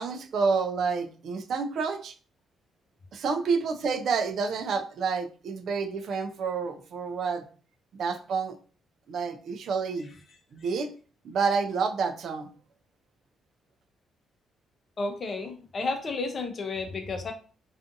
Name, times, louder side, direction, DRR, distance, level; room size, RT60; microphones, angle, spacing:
voice 1, 0.0-2.1 3.1-7.4 7.9-8.6 9.1-10.1 10.5-10.9 11.2-12.5, right 5 dB, 65° right, 8 dB, 0.4 m, -29 dB
voice 2, 15.0-17.3, left 3 dB, 45° left, 5 dB, 0.6 m, -32 dB
2.5 x 2.4 x 2.5 m, 0.39 s
cardioid pair, 90°, 0 cm